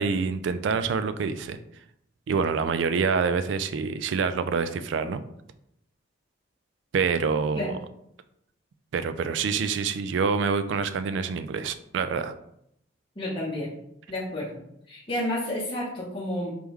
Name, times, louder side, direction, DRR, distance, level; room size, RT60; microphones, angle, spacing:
voice 1, 0.0-1.6 2.3-5.2 6.9-7.7 8.9-12.3, right 5 dB, 70° right, 11 dB, 0.3 m, -26 dB
voice 2, 13.2-13.7 14.1-14.6 14.9-16.5, left 1 dB, 25° left, -6 dB, 0.8 m, -30 dB
3.5 x 3.4 x 3.1 m, 0.75 s
head